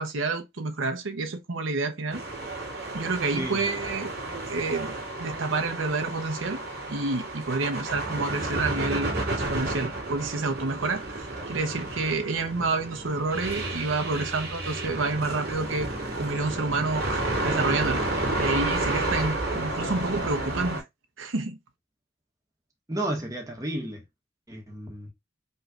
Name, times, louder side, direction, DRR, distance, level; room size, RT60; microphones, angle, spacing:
voice 1, 0.0-2.2 2.9-4.1 4.5-6.6 6.9-15.9 16.2-18.1 18.4-20.8 21.2-21.6, right 3 dB, 85° right, 0.9 m, -29 dB
sound 1, 2.1-20.8, right 2 dB, 55° right, 2.9 m, -31 dB
voice 2, 22.9-24.0 24.5-25.1, right 1 dB, 20° right, 1.5 m, -32 dB
5.5 x 3.2 x 2.4 m
head